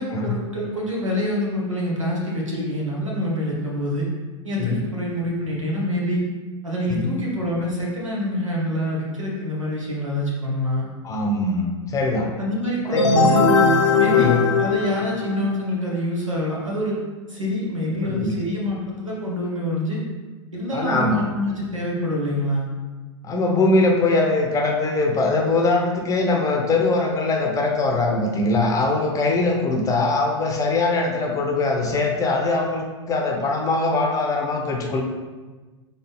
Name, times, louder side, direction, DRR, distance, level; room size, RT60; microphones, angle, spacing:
voice 1, 0.0-4.1 4.4-6.2 6.6-10.9 12.4-13.4 14.0-14.3 14.6-17.0 17.3-20.0 20.5-22.6, left 1 dB, 85° right, -4 dB, 1.4 m, -26 dB
voice 2, 11.0-12.3 12.8-13.1 14.1-14.5 18.0-18.3 20.7-21.2 23.2-35.0, left 3 dB, 20° left, 1 dB, 0.7 m, -22 dB
sound 1, 13.0-15.6, left 4 dB, 75° left, 0.6 m, -19 dB
3.9 x 3.7 x 3.6 m, 1.3 s
figure-of-eight pair, 95°, 16 cm